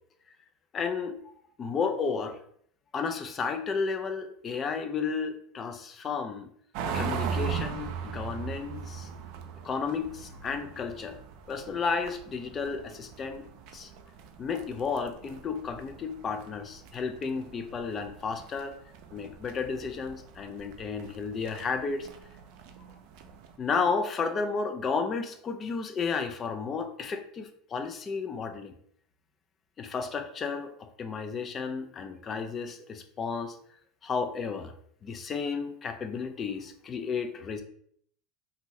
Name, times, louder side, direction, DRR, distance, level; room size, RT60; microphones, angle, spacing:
voice 1, 0.7-1.3 1.6-2.4 2.9-6.5 6.9-9.1 9.6-11.2 11.5-13.4 13.7-13.9 14.4-18.7 19.1-22.1 23.6-28.7 29.8-33.6 34.0-34.7 35.0-37.6, left 5 dB, 35° left, 7 dB, 0.4 m, -32 dB
sound 1, 6.7-23.6, right 6 dB, 65° right, 0.4 m, -40 dB
2.6 x 2.5 x 3.0 m, 0.64 s
hypercardioid pair, 95°, 0 cm